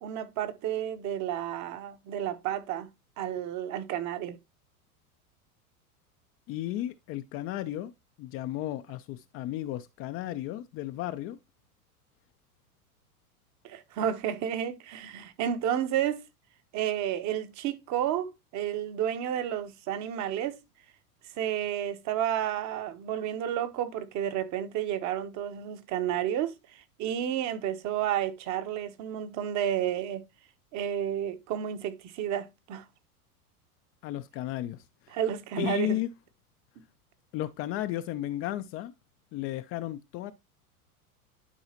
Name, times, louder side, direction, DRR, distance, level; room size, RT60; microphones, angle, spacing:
voice 1, 0.0-2.9 3.2-4.4 13.6-16.2 16.7-20.6 21.4-30.2 30.7-32.8 35.1-36.0, right 10 dB, 40° right, 1.1 m, -31 dB
voice 2, 6.5-7.9 8.2-11.4 34.0-35.2 35.6-36.1 37.3-38.9 39.3-40.3, left 14 dB, 30° left, 0.5 m, -34 dB
11.0 x 4.7 x 2.9 m
hypercardioid pair, 95°, 45 cm